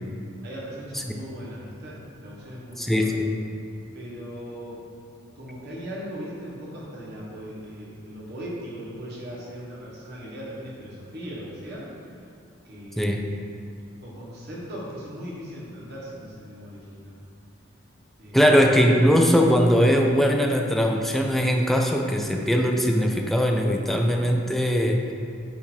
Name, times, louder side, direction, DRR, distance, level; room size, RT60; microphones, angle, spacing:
voice 1, 0.4-3.2 3.9-4.8 5.3-12.2 12.6-13.4 14.0-17.2 18.2-18.5, equal, 55° right, -6 dB, 1.5 m, -38 dB
voice 2, 2.8-3.3 13.0-13.3 18.3-25.1, equal, ahead, 2 dB, 0.4 m, -20 dB
8.4 x 2.9 x 4.5 m, 2.4 s
head